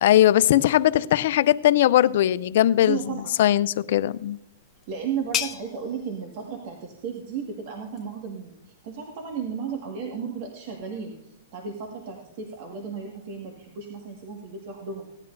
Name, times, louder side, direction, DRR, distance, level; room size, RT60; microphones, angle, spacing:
voice 1, 0.0-4.4, left 12 dB, 60° left, 0.5 m, -20 dB
voice 2, 2.9-3.2 4.9-15.1, right 6 dB, 50° right, 1.9 m, -34 dB
sound 1, 4.0-9.4, left 8 dB, 25° left, 0.8 m, -38 dB
17.0 x 11.0 x 2.7 m
hypercardioid pair, 140°, 0 cm